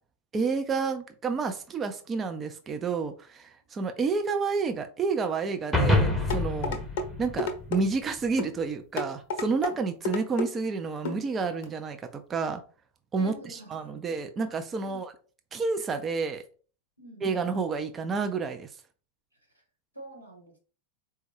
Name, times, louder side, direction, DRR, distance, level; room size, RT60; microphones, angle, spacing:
voice 1, 0.3-6.8 7.2-12.6 13.1-15.1 15.5-16.4 17.2-18.7, right 4 dB, 20° right, 0.4 m, -30 dB
sound 1, 5.7-8.2, left 2 dB, 5° left, 0.7 m, -26 dB
sound 2, 6.3-7.1 7.4-7.8 8.4-8.6 9.0-9.7 10.1-10.5 11.1-11.2 11.6-11.7, left 2 dB, 50° left, 0.7 m, -30 dB
voice 2, 13.2-14.1 14.8-15.0 17.0-17.2 19.9-20.6, equal, 90° right, 1.2 m, -46 dB
4.2 x 2.2 x 3.2 m
figure-of-eight pair, 90°, 0 cm